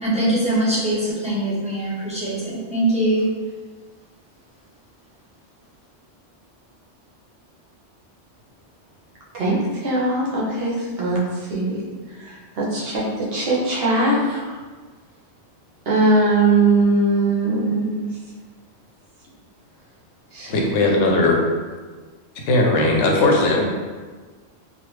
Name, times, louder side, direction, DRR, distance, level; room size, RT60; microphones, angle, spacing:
voice 1, 0.0-3.2, right 1 dB, 5° right, -10 dB, 0.7 m, -22 dB
voice 2, 9.3-11.8 12.1-14.6 15.9-18.1 20.3-20.6, right 2 dB, 60° right, -5 dB, 0.9 m, -21 dB
voice 3, 20.5-21.4 22.5-23.6, left 2 dB, 85° left, 0 dB, 0.9 m, -18 dB
3.2 x 2.3 x 3.0 m, 1.4 s
omnidirectional pair, 1.2 m